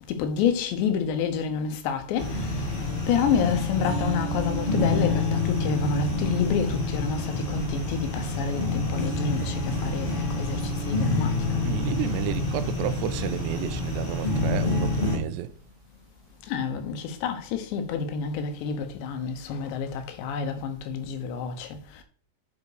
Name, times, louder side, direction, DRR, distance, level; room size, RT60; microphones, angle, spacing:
voice 1, 0.1-2.5 3.1-11.6 16.5-21.7, left 6 dB, 80° left, 3.4 m, -28 dB
sound 1, 2.2-15.2, left 2 dB, 45° left, 0.7 m, -27 dB
voice 2, 11.6-15.5, right 11 dB, 90° right, 2.9 m, -31 dB
9.5 x 5.3 x 5.0 m
omnidirectional pair, 5.1 m